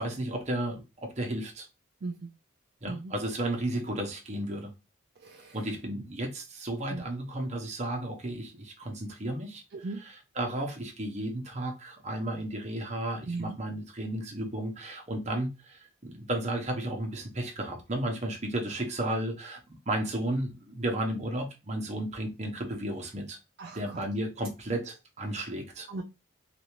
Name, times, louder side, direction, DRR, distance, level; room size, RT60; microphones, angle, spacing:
voice 1, 0.0-1.7 2.8-4.7 5.5-9.6 10.4-23.4 23.7-25.9, right 1 dB, 35° right, 0.8 m, -33 dB
voice 2, 5.2-5.6 6.9-7.0 9.7-10.0 13.2-13.6 23.6-24.0 25.9-26.0, right 3 dB, 55° right, 0.4 m, -38 dB
3.3 x 2.6 x 3.1 m
head